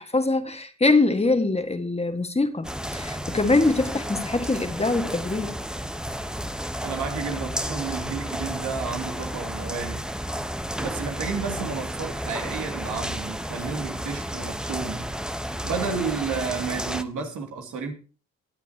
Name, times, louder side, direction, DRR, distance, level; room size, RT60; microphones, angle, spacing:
voice 1, 0.0-2.7 2.9-5.5, left 3 dB, 20° left, 1.8 m, -23 dB
sound 1, 2.6-17.0, equal, ahead, 1.1 m, -32 dB
voice 2, 6.8-10.1 10.8-15.1 15.6-17.9, right 5 dB, 80° right, 2.9 m, -31 dB
23.0 x 8.2 x 2.9 m
cardioid pair, 65°, 30 cm